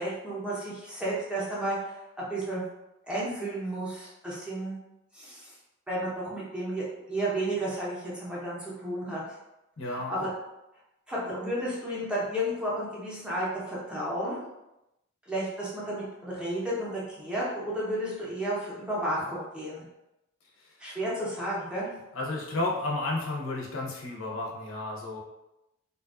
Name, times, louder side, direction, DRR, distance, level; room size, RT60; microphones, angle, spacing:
voice 1, 0.0-1.8 2.3-2.6 3.1-4.8 5.1-5.5 5.9-9.2 9.9-10.3 11.1-14.4 15.3-19.8 20.8-21.9, right 1 dB, 5° right, -7 dB, 0.6 m, -32 dB
voice 2, 9.8-10.1 20.6-20.8 22.1-25.2, left 2 dB, 70° left, -2 dB, 0.5 m, -32 dB
2.4 x 2.2 x 2.3 m, 0.91 s
head